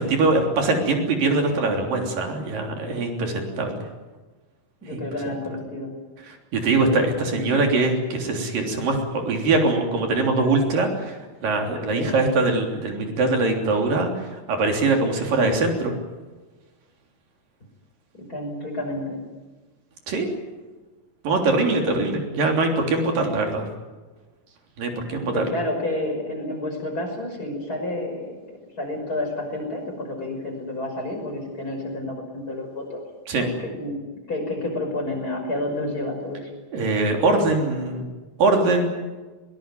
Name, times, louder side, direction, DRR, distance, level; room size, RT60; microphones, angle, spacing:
voice 1, 0.0-3.9 4.8-5.0 6.3-16.0 20.1-20.3 21.2-23.7 24.8-25.4 33.3-33.5 36.7-38.1 38.4-38.9, right 3 dB, 80° right, 3 dB, 5.1 m, -22 dB
voice 2, 4.8-6.0 6.9-7.5 11.9-12.1 18.3-19.2 25.3-33.0 33.3-34.0 34.3-36.5, left 1 dB, 25° left, 2 dB, 6.1 m, -30 dB
21.5 x 21.0 x 9.3 m, 1.3 s
omnidirectional pair, 3.8 m